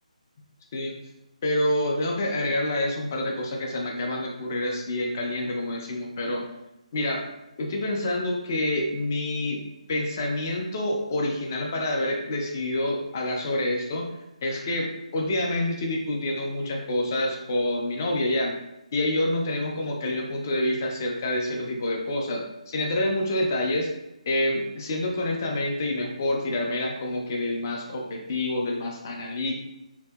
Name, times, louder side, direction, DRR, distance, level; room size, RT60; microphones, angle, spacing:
voice 1, 1.4-6.4 6.9-7.2 7.6-9.6 9.9-14.1 14.4-18.6 18.9-23.9 24.3-29.6, left 1 dB, 25° left, 0 dB, 0.3 m, -27 dB
2.6 x 2.5 x 2.3 m, 0.90 s
hypercardioid pair, 170°, 4 cm